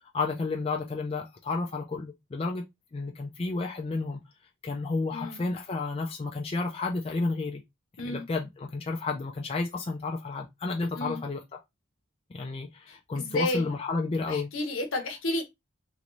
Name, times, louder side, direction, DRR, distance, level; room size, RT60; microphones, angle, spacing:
voice 1, 0.0-2.6 2.9-4.2 4.6-7.6 8.0-11.4 12.3-14.5, left 3 dB, 25° left, 0.3 m, -31 dB
voice 2, 5.1-5.4 8.0-8.2 10.9-11.2 12.9-13.7 14.3-15.4, left 1 dB, 65° left, 0.8 m, -32 dB
3.0 x 2.5 x 3.0 m
head